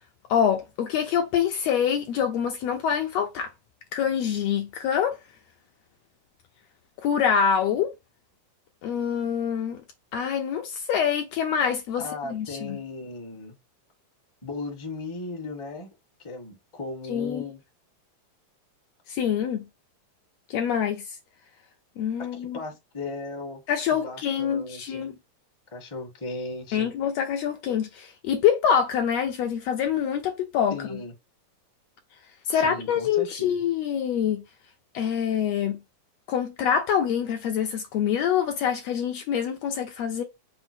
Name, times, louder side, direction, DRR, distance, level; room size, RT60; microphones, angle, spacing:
voice 1, 0.3-3.5 3.9-5.2 7.0-7.9 8.8-9.8 10.1-12.0 12.3-12.8 17.1-17.4 19.1-19.6 20.5-21.0 22.0-22.6 23.7-25.1 26.7-30.7 32.5-34.4 34.9-35.8 36.3-40.2, left 8 dB, 75° left, 1.6 m, -25 dB
voice 2, 12.0-13.6 14.4-15.9 16.2-17.6 22.2-23.6 23.9-25.1 25.7-26.9 30.7-31.1 32.5-33.6, left 3 dB, 20° left, 0.8 m, -36 dB
5.7 x 2.0 x 4.4 m
omnidirectional pair, 3.4 m